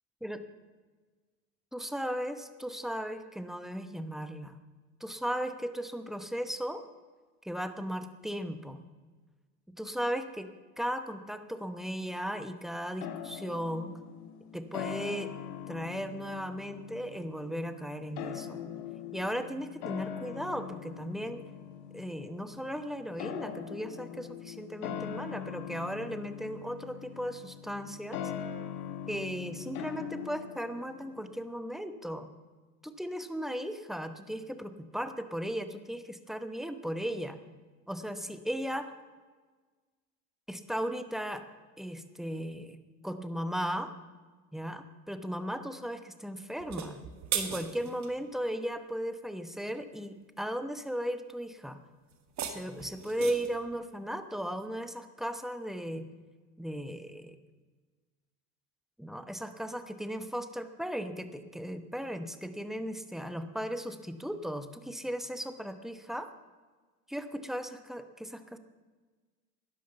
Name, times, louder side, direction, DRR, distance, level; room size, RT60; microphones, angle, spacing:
voice 1, 1.7-4.6 5.0-6.8 7.4-8.8 9.8-13.9 14.5-15.3 15.7-18.6 19.1-21.4 21.9-28.2 29.1-32.3 32.8-37.4 37.9-38.9 40.5-41.4 41.8-43.9 44.5-47.0 47.3-51.8 52.5-56.1 56.6-57.4 59.0-66.3 67.1-68.6, equal, ahead, 10 dB, 0.9 m, -36 dB
sound 1, 13.0-31.5, left 8 dB, 70° left, 1.7 m, -42 dB
sound 2, 46.6-48.1 52.1-53.6, right 8 dB, 40° right, 1.7 m, -37 dB
12.5 x 10.5 x 6.8 m, 1.4 s
hypercardioid pair, 100°, 45 cm